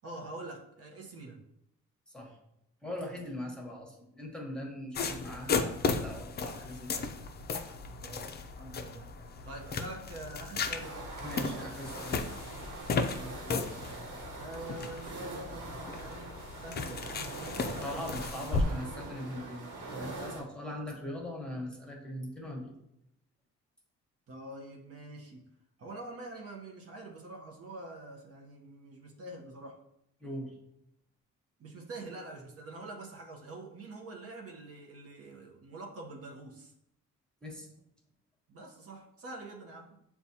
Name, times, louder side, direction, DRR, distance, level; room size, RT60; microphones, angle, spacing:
voice 1, 0.0-1.4 8.0-8.3 8.6-9.1 9.4-11.6 13.2-13.8 14.3-18.2 24.3-25.5 25.8-29.8 31.6-36.7 38.5-40.0, right 2 dB, 50° right, 0 dB, 0.8 m, -45 dB
voice 2, 2.8-7.1 11.2-12.2 17.8-22.7 30.2-30.5 37.4-37.7, left 1 dB, 5° left, -1 dB, 1.1 m, -40 dB
sound 1, 4.9-18.6, left 4 dB, 35° left, 0.4 m, -35 dB
sound 2, 10.7-20.4, right 3 dB, 85° right, 1.1 m, -43 dB
6.9 x 2.3 x 2.7 m, 0.80 s
cardioid pair, 90°, 30 cm